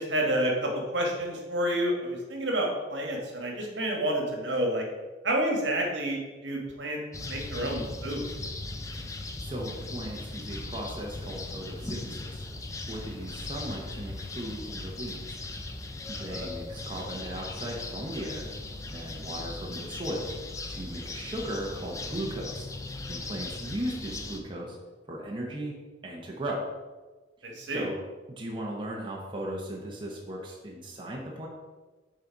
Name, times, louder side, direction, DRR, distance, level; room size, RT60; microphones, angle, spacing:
voice 1, 0.0-4.9 5.2-7.0 7.3-8.2 16.1-16.5 27.4-27.9, right 1 dB, 70° right, 0 dB, 1.4 m, -29 dB
sound 1, 7.1-24.4, left 2 dB, 15° left, 0.4 m, -38 dB
voice 2, 9.4-12.4 12.9-15.4 16.1-18.5 18.9-20.3 20.7-22.7 23.1-24.8 25.1-25.7 26.0-26.7 27.4-27.9 28.3-31.5, right 1 dB, 25° right, -3 dB, 0.8 m, -37 dB
6.5 x 4.0 x 4.6 m, 1.3 s
head